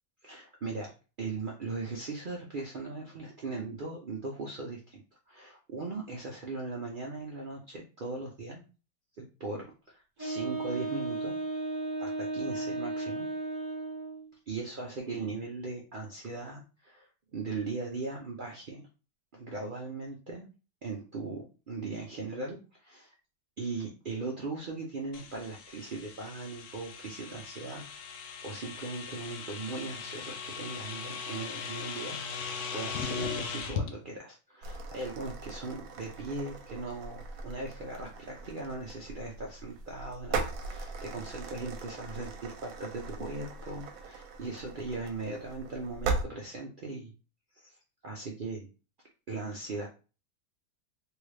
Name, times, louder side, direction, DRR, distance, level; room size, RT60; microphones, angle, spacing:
voice 1, 0.2-0.9 1.2-8.6 9.2-11.3 12.0-13.3 14.5-18.8 19.3-20.4 20.8-23.1 23.6-32.2 32.7-47.1 47.5-47.8 48.0-48.7 49.3-49.9, right 3 dB, 85° right, -1 dB, 0.4 m, -39 dB
Wind instrument woodwind instrument, 10.2-14.3, right 2 dB, 35° right, 1.0 m, -34 dB
sound 1, 25.1-33.9, left 6 dB, 70° left, 0.8 m, -39 dB
sound 2, 34.6-46.2, right 3 dB, 70° right, 1.0 m, -39 dB
3.4 x 2.3 x 3.2 m, 0.33 s
omnidirectional pair, 1.7 m